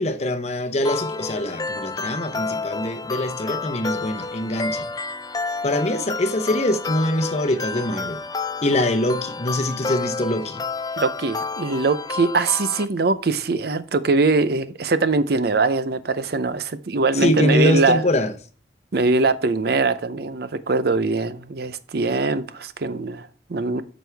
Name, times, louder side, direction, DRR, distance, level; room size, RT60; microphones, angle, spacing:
voice 1, 0.0-4.9 5.6-8.2 8.6-10.6 17.1-18.3, left 1 dB, 35° left, 0.8 m, -23 dB
sound 1, 0.8-12.8, left 4 dB, 20° left, 0.4 m, -30 dB
voice 2, 11.0-18.0 18.9-23.8, right 3 dB, 55° right, 0.6 m, -22 dB
9.2 x 6.3 x 3.4 m
head